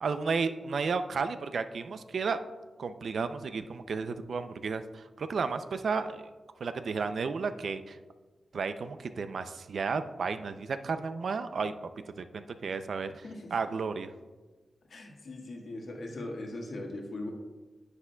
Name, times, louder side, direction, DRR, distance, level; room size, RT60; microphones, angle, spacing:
voice 1, 0.0-2.4 2.8-6.3 6.6-8.0 8.5-11.7 12.2-13.2 13.5-14.1, right 5 dB, 65° right, 10 dB, 0.4 m, -33 dB
voice 2, 13.2-13.6 14.9-17.3, left 2 dB, 65° left, 0 dB, 1.6 m, -40 dB
9.7 x 9.7 x 2.3 m, 1.3 s
wide cardioid pair, 165°, 0 cm